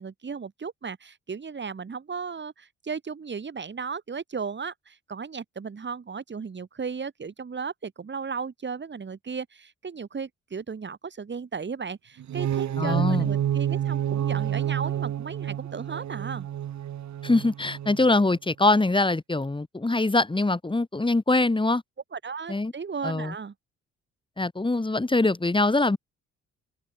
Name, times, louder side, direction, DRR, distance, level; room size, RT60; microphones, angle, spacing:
voice 1, 0.0-16.5 22.1-23.5, right 5 dB, 35° right, 6.7 m, -35 dB
sound 1, 12.2-18.1, right 10 dB, 65° right, 4.6 m, -29 dB
voice 2, 12.8-13.3 17.2-21.8 22.5-22.7 23.0-23.3 24.4-26.0, left 2 dB, 15° left, 6.3 m, -23 dB
cardioid pair, 90°, 30 cm